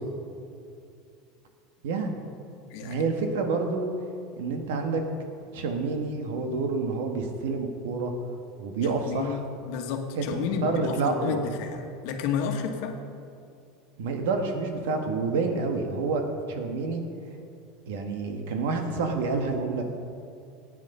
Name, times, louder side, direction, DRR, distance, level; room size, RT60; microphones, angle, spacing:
voice 1, 1.8-2.2 2.8-3.9 4.4-5.0 5.5-8.1 8.6-9.4 10.1-11.5 14.0-16.2 16.5-17.0 17.9-19.8, right 4 dB, 80° right, 4 dB, 1.6 m, -28 dB
voice 2, 2.7-3.0 8.8-13.0, left 6 dB, 55° left, 5 dB, 1.4 m, -31 dB
15.0 x 9.6 x 5.5 m, 2.5 s
supercardioid pair, 175°, 0 cm